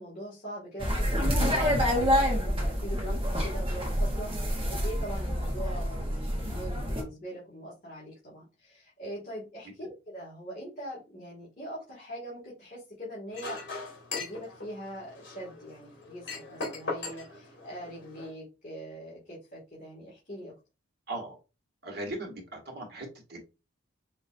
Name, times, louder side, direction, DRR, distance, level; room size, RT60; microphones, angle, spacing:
voice 1, 0.0-13.7 14.2-20.5, right 1 dB, 40° left, -7 dB, 2.2 m, -42 dB
sound 1, 0.8-7.0, equal, 30° right, 1.2 m, -27 dB
Chink clink, 13.3-18.3, left 3 dB, 60° left, 2.0 m, -39 dB
voice 2, 21.1-21.4 21.8-23.4, right 2 dB, 55° right, 1 dB, 1.5 m, -38 dB
5.5 x 3.0 x 2.6 m, 0.28 s
head